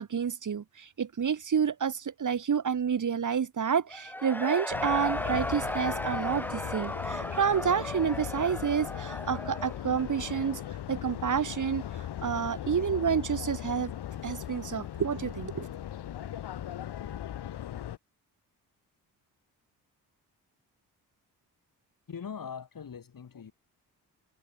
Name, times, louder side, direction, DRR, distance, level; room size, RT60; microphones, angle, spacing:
voice 1, 0.0-10.6 10.9-11.8 12.2-13.9 14.2-15.7, right 7 dB, 45° right, 1.8 m, -29 dB
Cheering / Crowd, 3.9-10.6, left 1 dB, 5° left, 2.2 m, -36 dB
sound 1, 4.7-18.0, left 11 dB, 70° left, 3.6 m, -38 dB
voice 2, 22.1-23.5, left 7 dB, 55° left, 5.3 m, -41 dB
supercardioid pair, 50°, 42 cm